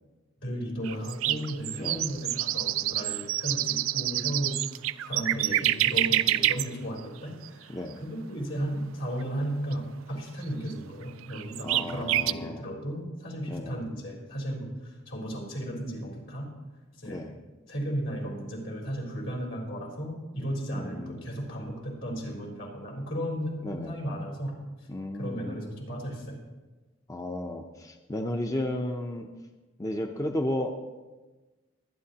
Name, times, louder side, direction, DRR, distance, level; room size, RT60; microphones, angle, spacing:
voice 1, 0.4-4.6 5.0-16.5 17.0-17.3 17.7-24.5 25.1-26.4, equal, 75° left, -2 dB, 4.0 m, -35 dB
sound 1, 0.8-6.7 7.0-7.1 7.4-7.5 9.7-9.8 10.4-10.5 10.7-10.8 11.3-12.3, right 14 dB, 90° right, 0.4 m, -27 dB
voice 2, 11.6-12.6 13.5-13.8 17.1-17.3 20.7-21.3 23.6-23.9 24.9-25.6 27.1-29.3 29.8-30.8, left 1 dB, 15° left, 4 dB, 0.6 m, -33 dB
23.0 x 9.7 x 2.9 m, 1.2 s
head